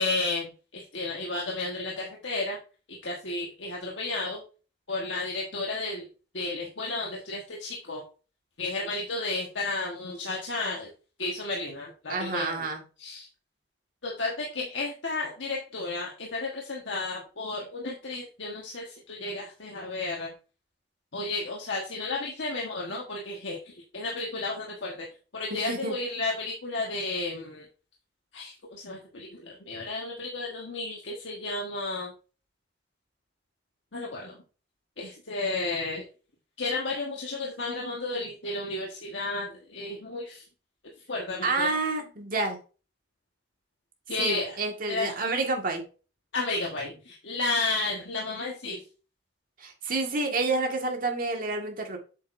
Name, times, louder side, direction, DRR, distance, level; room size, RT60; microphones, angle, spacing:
voice 1, 0.0-2.6 2.9-4.4 4.9-6.1 6.3-8.0 8.6-10.9 11.2-12.7 13.0-13.3 14.0-20.3 21.1-25.1 25.3-27.7 28.3-32.1 33.9-34.4 35.0-36.0 36.6-40.4 41.1-41.7 44.1-44.6 44.9-45.2 46.3-48.8, left 3 dB, 85° left, 1.4 m, -32 dB
voice 2, 12.1-12.8 25.5-25.9 41.4-42.6 44.2-45.8 49.6-52.0, right 3 dB, 50° right, 1.8 m, -29 dB
8.2 x 6.5 x 2.6 m
head